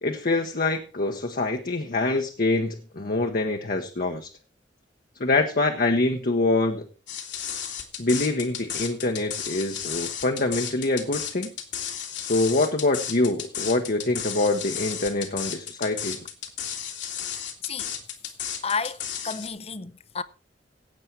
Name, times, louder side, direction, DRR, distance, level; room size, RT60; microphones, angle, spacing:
voice 1, 0.0-4.3 5.2-6.9 8.0-11.5 12.2-16.2, left 2 dB, 50° left, 1.1 m, -25 dB
sound 1, 7.1-19.5, left 9 dB, 70° left, 2.2 m, -33 dB
voice 2, 17.6-17.9 18.6-20.2, left 5 dB, 35° left, 0.7 m, -31 dB
16.0 x 8.5 x 4.5 m
head